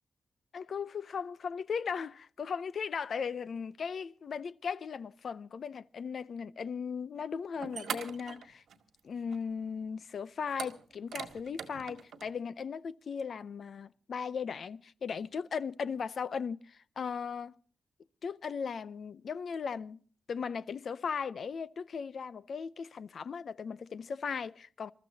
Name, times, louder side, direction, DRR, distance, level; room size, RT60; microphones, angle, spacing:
voice 1, 0.5-8.6 9.0-17.5 18.2-20.0 20.3-24.9, left 6 dB, 50° left, 0.6 m, -37 dB
sound 1, 7.1-7.2 7.6-9.0 9.3-9.4 10.5-12.3, right 7 dB, 80° right, 1.9 m, -41 dB
28.0 x 14.0 x 2.8 m
wide cardioid pair, 175°, 0 cm